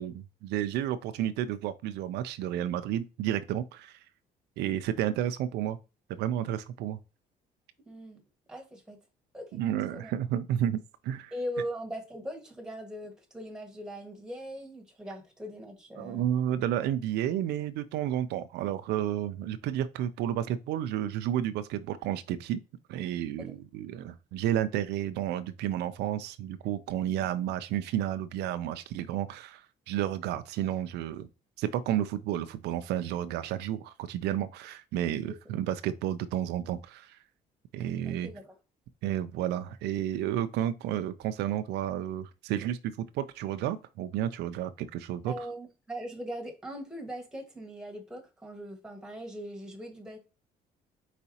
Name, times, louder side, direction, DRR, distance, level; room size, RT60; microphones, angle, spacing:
voice 1, 0.0-4.0 4.6-5.8 6.2-7.0 9.5-11.3 16.0-22.6 22.9-31.3 31.6-37.2 37.7-38.3 39.0-45.5, right 11 dB, 80° right, 0.4 m, -31 dB
voice 2, 7.8-8.2 8.5-9.0 9.3-9.6 9.9-10.1 11.3-16.2 23.4-23.5 35.3-35.4 38.0-38.5 45.3-50.2, equal, 5° right, 1.5 m, -40 dB
4.6 x 4.1 x 2.8 m
cardioid pair, 110°, 17 cm